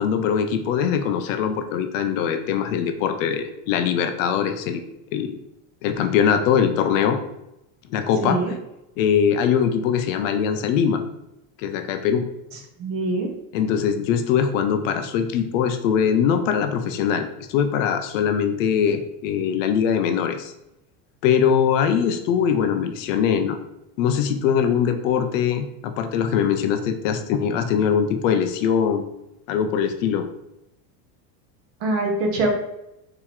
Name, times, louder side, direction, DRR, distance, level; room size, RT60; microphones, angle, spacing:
voice 1, 0.0-4.8 5.1-5.3 5.8-7.2 7.9-8.4 9.0-11.0 11.6-12.2 13.5-20.5 21.2-23.6 24.0-29.1 29.5-30.3, left 7 dB, 60° left, 7 dB, 0.6 m, -22 dB
voice 2, 8.2-8.5 12.8-13.3 31.8-32.5, right 2 dB, 35° right, 1 dB, 0.9 m, -23 dB
4.4 x 2.9 x 3.8 m, 0.88 s
cardioid pair, 175°, 43 cm